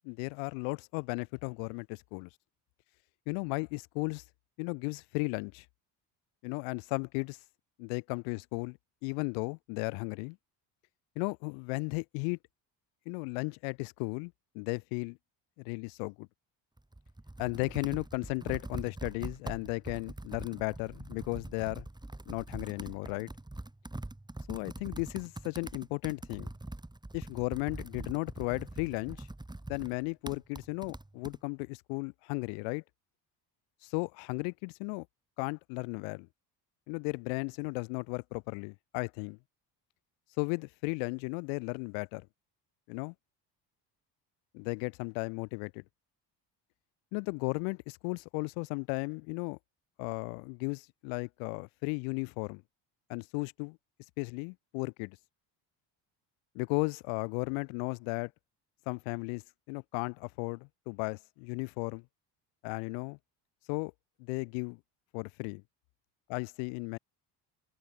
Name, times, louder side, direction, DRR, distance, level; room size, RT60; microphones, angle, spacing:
voice 1, 0.0-2.3 3.3-4.2 4.6-5.7 6.4-7.4 7.8-8.8 9.0-10.4 11.2-12.4 13.1-15.2 15.6-16.3 17.4-21.9 22.3-23.3 24.5-26.5 27.1-29.3 29.7-32.8 33.8-35.1 35.4-36.3 36.9-39.4 40.4-42.3 42.9-43.1 44.5-45.8 47.1-49.6 50.0-52.6 53.1-53.8 54.2-55.2 56.5-58.3 58.9-59.4 59.7-62.0 62.6-63.2 63.7-63.9 64.2-64.8 65.1-65.6 66.3-67.0, left 40 dB or more, 85° left, 0.7 m, -35 dB
Computer keyboard, 16.8-31.4, right 1 dB, 10° right, 4.1 m, -43 dB
supercardioid pair, 75°, 48 cm